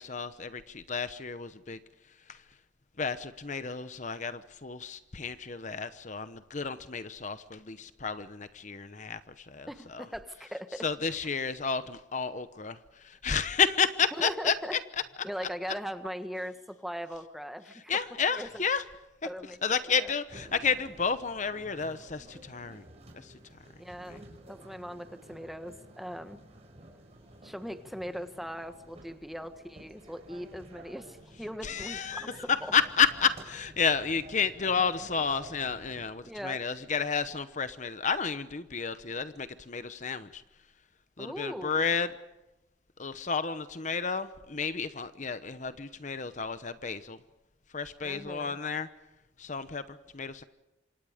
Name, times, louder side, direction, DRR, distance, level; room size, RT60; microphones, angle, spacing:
voice 1, 0.0-1.8 2.3-2.4 3.0-10.0 10.8-14.5 17.9-18.8 19.6-22.8 23.1-23.3 24.1-24.2 31.6-32.4 32.7-40.4 41.2-42.1 43.0-47.2 47.7-48.9 49.4-50.4, left 6 dB, 40° left, 12 dB, 0.9 m, -31 dB
voice 2, 9.7-10.9 14.2-14.7 15.2-17.9 18.3-18.6 19.2-20.1 23.8-26.4 27.4-32.2 32.6-32.7 36.2-36.6 41.2-41.9 48.0-48.6, equal, ahead, 8 dB, 1.4 m, -40 dB
sound 1, 20.3-36.1, right 1 dB, 35° right, 5.5 m, -52 dB
27.5 x 26.5 x 5.1 m, 0.99 s
head